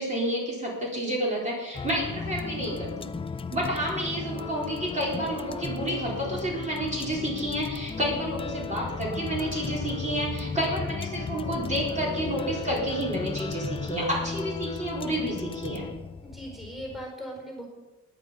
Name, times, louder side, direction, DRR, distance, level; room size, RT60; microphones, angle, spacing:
voice 1, 0.0-3.1 3.5-15.9, right 1 dB, 20° right, -4 dB, 4.2 m, -30 dB
sound 1, 1.7-17.0, left 5 dB, 15° left, 0.4 m, -35 dB
voice 2, 16.2-17.7, equal, ahead, 0 dB, 4.5 m, -39 dB
17.5 x 10.5 x 5.2 m, 1.1 s
cardioid pair, 140°, 35 cm